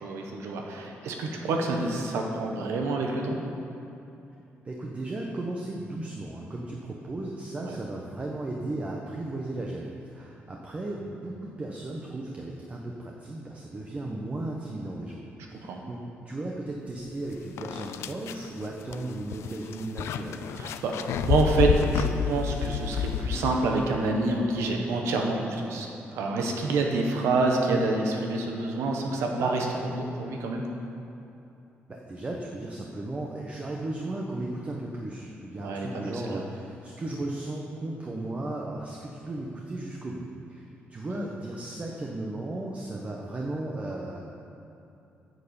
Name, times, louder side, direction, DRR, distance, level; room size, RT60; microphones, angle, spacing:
voice 1, 0.0-3.4 7.6-7.7 15.5-15.8 20.5-30.6 35.6-36.5 41.1-41.3, right 3 dB, 90° right, 1 dB, 1.4 m, -27 dB
voice 2, 4.6-15.2 15.5-20.7 31.9-44.2, right 2 dB, 30° right, -1 dB, 1.1 m, -35 dB
sound 1, 17.1-17.2 17.6-23.9, left 9 dB, 85° left, 0.4 m, -30 dB
9.2 x 6.7 x 7.1 m, 2.8 s
cardioid pair, 100°, 4 cm